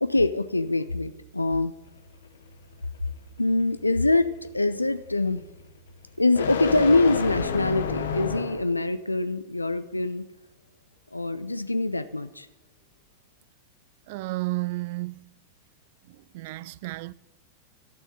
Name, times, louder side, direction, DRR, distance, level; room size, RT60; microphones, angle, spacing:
voice 1, 0.0-1.8 3.4-5.4 6.2-10.2 11.1-12.5, left 2 dB, 85° left, 0.5 m, -24 dB
sound 1, 1.8-8.8, left 6 dB, 65° left, 1.5 m, -32 dB
voice 2, 14.1-15.3 16.1-17.1, right 21 dB, 50° right, 0.3 m, -32 dB
11.5 x 6.3 x 8.8 m
figure-of-eight pair, 90°, 0 cm